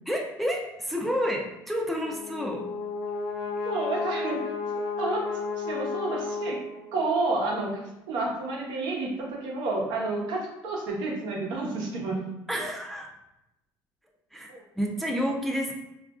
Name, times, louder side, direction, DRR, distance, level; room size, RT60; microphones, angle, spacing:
voice 1, 0.1-2.6 12.5-13.1 14.3-15.7, equal, ahead, -1 dB, 0.3 m, -30 dB
Brass instrument, 2.0-7.1, left 4 dB, 70° left, 0.6 m, -32 dB
voice 2, 3.6-4.4 5.0-6.6 6.9-7.8 8.1-12.2 14.5-14.6, right 3 dB, 80° right, -1 dB, 0.9 m, -30 dB
3.8 x 2.4 x 2.3 m, 0.90 s
cardioid pair, 140°, 8 cm